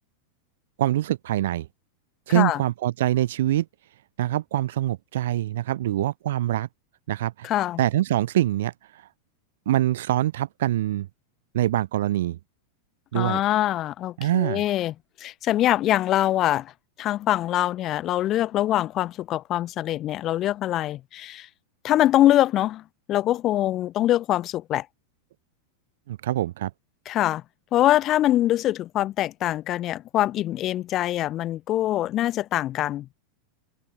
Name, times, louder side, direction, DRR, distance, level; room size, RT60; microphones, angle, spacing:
voice 1, 0.8-1.7 2.3-3.7 4.2-6.7 7.1-7.5 7.8-8.7 9.7-11.1 11.5-12.4 13.1-13.4 14.2-14.6 26.1-26.7, right 14 dB, 55° right, 1.1 m, -24 dB
voice 2, 7.4-7.8 13.1-14.9 15.2-16.7 17.0-21.5 21.8-22.8 23.1-24.9 27.1-27.4 27.7-33.1, left 13 dB, 35° left, 1.1 m, -23 dB
figure-of-eight pair, 90°, 0 cm